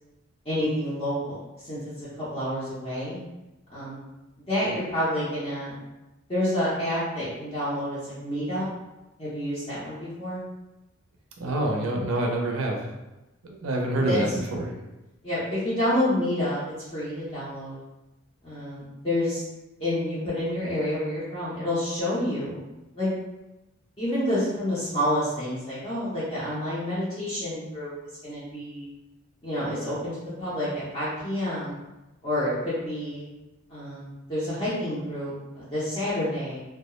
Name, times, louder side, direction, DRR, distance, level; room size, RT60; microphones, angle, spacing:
voice 1, 0.4-1.4 1.6-3.2 3.7-4.0 4.5-5.8 6.3-8.7 9.2-10.4 14.0-14.4 15.2-17.8 18.4-19.4 19.8-22.6 22.9-23.1 24.0-27.9 28.2-28.9 29.4-31.8 32.2-33.2 33.7-36.6, left 1 dB, 25° left, -11 dB, 0.6 m, -28 dB
voice 2, 11.4-12.8 13.4-14.7, right 1 dB, 90° right, 0 dB, 0.5 m, -26 dB
2.3 x 2.0 x 2.9 m, 1.0 s
head